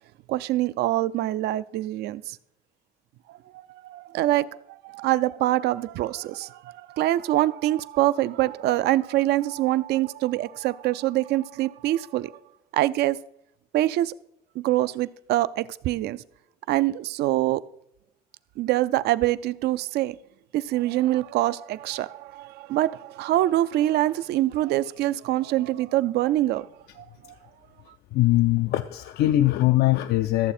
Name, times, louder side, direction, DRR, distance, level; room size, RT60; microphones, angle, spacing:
voice 1, 0.3-2.4 3.3-12.4 12.7-13.2 13.7-14.1 14.6-16.2 16.7-17.6 18.6-20.2 20.5-26.7 27.0-27.3, right 15 dB, 75° right, 0.5 m, -25 dB
voice 2, 28.1-30.5, left 15 dB, 75° left, 0.4 m, -21 dB
14.0 x 7.2 x 4.3 m
cardioid pair, 110°, 17 cm